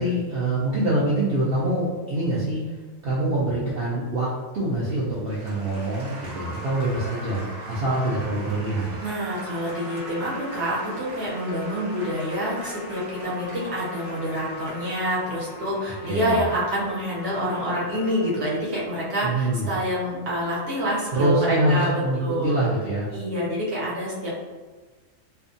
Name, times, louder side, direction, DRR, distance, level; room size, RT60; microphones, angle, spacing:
voice 1, 0.0-2.8 3.0-4.3 4.5-9.0 16.0-16.4 19.2-19.7 21.1-23.1, right 1 dB, 75° right, -7 dB, 0.5 m, -25 dB
Applause, 4.7-21.9, right 1 dB, 90° right, 1.2 m, -42 dB
voice 2, 9.0-22.6 23.1-24.3, equal, 55° right, -7 dB, 0.9 m, -27 dB
Trumpet, 9.5-18.5, left 2 dB, 50° left, 0.5 m, -42 dB
2.6 x 2.2 x 2.5 m, 1.3 s
omnidirectional pair, 1.6 m